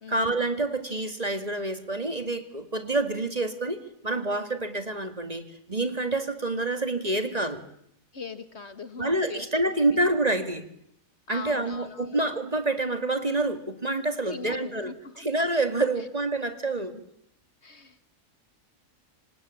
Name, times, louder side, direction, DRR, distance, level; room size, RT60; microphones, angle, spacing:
voice 1, 0.1-3.8 4.0-7.6 9.0-10.7 11.3-14.9 15.2-17.0, right 2 dB, 30° right, 9 dB, 2.3 m, -27 dB
voice 2, 8.1-10.0 11.3-12.2 14.2-15.3 16.7-17.0 17.6-18.1, left 5 dB, 50° left, 12 dB, 1.8 m, -41 dB
27.5 x 25.0 x 8.6 m, 0.73 s
omnidirectional pair, 1.5 m